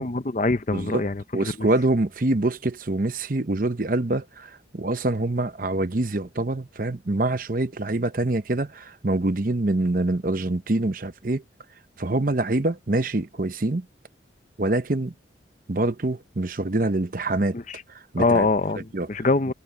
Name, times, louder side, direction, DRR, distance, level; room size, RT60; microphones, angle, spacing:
voice 1, 0.0-1.7 17.5-17.8 18.2-19.5, left 3 dB, 40° left, 0.7 m, -24 dB
voice 2, 0.7-1.1 1.3-11.4 12.0-13.9 14.6-15.1 15.7-17.6 18.1-18.5 18.9-19.1, right 2 dB, 50° right, 0.8 m, -25 dB
head